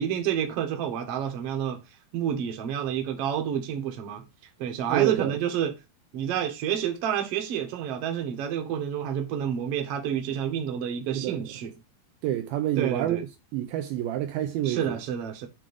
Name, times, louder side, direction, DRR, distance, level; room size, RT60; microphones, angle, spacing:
voice 1, 0.0-1.8 2.1-4.2 4.6-5.7 6.1-11.7 12.8-13.2 14.6-15.5, right 9 dB, 60° right, 1.7 m, -29 dB
voice 2, 4.9-5.3 11.1-11.5 12.2-13.3 13.5-15.0, right 12 dB, 80° right, 2.3 m, -28 dB
7.5 x 3.7 x 5.2 m
omnidirectional pair, 4.7 m